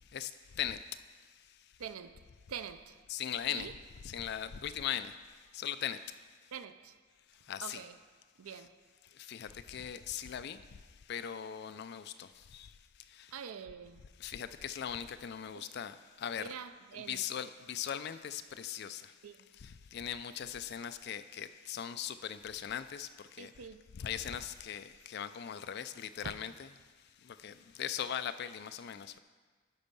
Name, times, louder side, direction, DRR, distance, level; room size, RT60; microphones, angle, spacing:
voice 1, 1.8-2.2 2.5-3.0 3.5-3.7 6.5-6.9 7.6-8.0 8.4-8.7 13.3-14.0 15.5-15.6 16.4-17.2 19.2-19.5 23.4-23.9 26.2-26.3, right 7 dB, 80° right, 0.5 m, -45 dB
voice 2, 3.1-3.7 4.0-5.1 5.5-6.0 7.5-7.8 9.3-10.6 11.1-12.7 14.2-16.5 16.9-19.1 19.6-23.1 23.4-23.5 24.0-26.5 27.3-29.2, left 9 dB, 50° left, 0.3 m, -39 dB
12.0 x 4.5 x 5.4 m
head